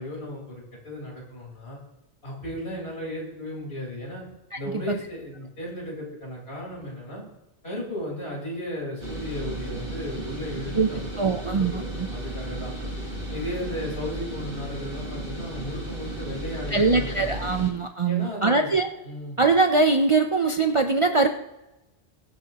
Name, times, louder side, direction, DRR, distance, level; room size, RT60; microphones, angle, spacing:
voice 1, 0.0-1.8 2.2-4.2 4.6-7.2 7.6-12.7 13.3-17.5 18.1-18.7 19.0-19.4, left 1 dB, 85° left, -3 dB, 4.7 m, -35 dB
sound 1, 9.0-17.7, right 1 dB, 55° right, 4.5 m, -34 dB
voice 2, 11.2-11.8 16.7-18.9 19.4-21.3, right 3 dB, 35° right, 5 dB, 0.6 m, -22 dB
22.0 x 8.2 x 3.0 m, 0.99 s
omnidirectional pair, 1.0 m